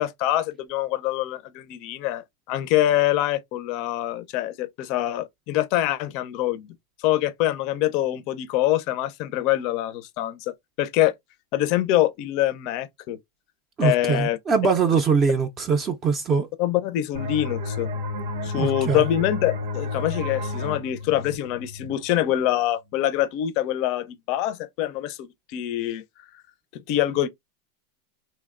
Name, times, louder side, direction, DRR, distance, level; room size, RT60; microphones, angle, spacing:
voice 1, 0.0-11.1 11.5-13.2 13.8-14.4 16.6-17.9 18.4-26.0 26.7-27.3, left 13 dB, 55° left, 0.4 m, -25 dB
voice 2, 13.8-16.5 18.5-19.0, right 5 dB, 30° right, 0.4 m, -22 dB
sound 1, 17.1-22.5, left 3 dB, 85° right, 0.7 m, -31 dB
2.8 x 2.0 x 2.4 m
hypercardioid pair, 115°, 0 cm